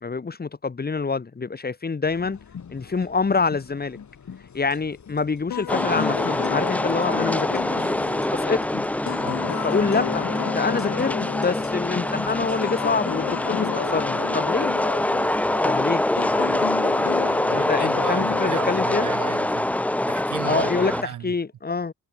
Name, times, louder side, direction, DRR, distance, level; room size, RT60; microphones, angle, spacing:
voice 1, 0.0-2.4 2.7-4.0 4.5-7.8 8.3-8.6 9.6-14.7 15.6-16.0 17.5-19.1 20.4-20.9 21.2-21.9, left 4 dB, 30° left, 1.0 m, -26 dB
sound 1, 2.0-12.6, left 7 dB, 60° left, 3.4 m, -42 dB
sound 2, 5.5-19.7, left 11 dB, 80° left, 1.1 m, -32 dB
sound 3, 5.7-21.0, left 1 dB, 5° left, 0.4 m, -25 dB
voice 2, 9.2-9.5 17.5-19.7 20.1-21.3, right 10 dB, 75° right, 0.9 m, -35 dB
cardioid pair, 65°, 32 cm